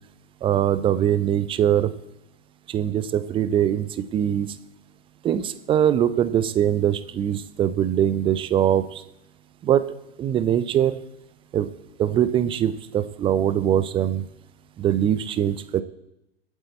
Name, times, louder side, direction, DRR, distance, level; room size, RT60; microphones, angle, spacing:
voice 1, 0.4-1.9 2.7-4.5 5.2-9.0 9.6-9.9 10.2-11.0 11.5-11.7 12.0-14.2 14.8-15.8, right 10 dB, 15° right, 14 dB, 0.6 m, -22 dB
24.0 x 8.2 x 4.3 m, 0.87 s
figure-of-eight pair, 100°, 31 cm